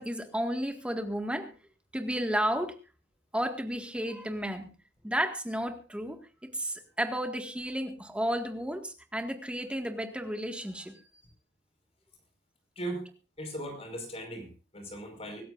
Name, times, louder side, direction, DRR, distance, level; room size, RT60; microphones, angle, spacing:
voice 1, 0.0-1.5 1.9-2.8 3.3-4.7 5.0-6.2 6.4-10.9, equal, 5° right, 5 dB, 1.8 m, -32 dB
voice 2, 12.7-13.1 13.4-15.4, right 1 dB, 35° left, 5 dB, 5.1 m, -38 dB
25.0 x 13.5 x 2.6 m, 0.35 s
head